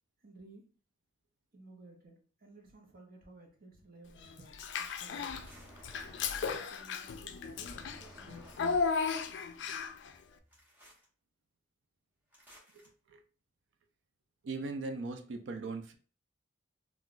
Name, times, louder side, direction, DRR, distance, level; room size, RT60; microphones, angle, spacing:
voice 1, 0.2-0.7 1.5-5.6 6.2-8.6, right 2 dB, 50° right, 0.8 m, -56 dB
Child speech kid speaking / Bathtub (filling or washing), 4.5-5.5 5.8-10.1, left 5 dB, 65° left, 0.3 m, -35 dB
sound 1, 5.2-6.7 7.6-9.1 10.5-11.1 12.3-12.9, equal, 10° right, 0.9 m, -55 dB
voice 2, 14.4-15.9, right 3 dB, 70° right, 0.4 m, -38 dB
2.4 x 2.3 x 3.8 m
head